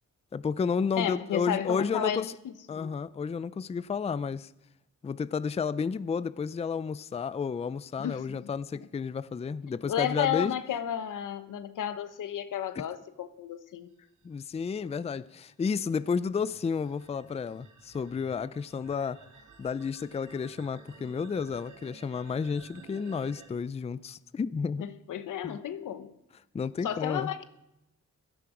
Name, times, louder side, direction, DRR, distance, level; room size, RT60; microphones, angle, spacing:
voice 1, 0.3-2.3 2.7-4.5 5.0-10.6 12.8-12.9 14.2-19.3 19.6-24.9 25.4-25.6 26.5-27.3, left 5 dB, 20° left, 0.4 m, -31 dB
voice 2, 1.0-2.9 8.0-8.5 9.9-13.9 24.8-26.1 26.8-27.4, left 9 dB, 90° left, 0.9 m, -33 dB
sound 1, 14.2-23.5, right 5 dB, 85° right, 2.4 m, -54 dB
15.5 x 12.5 x 4.9 m
cardioid pair, 95°, 30 cm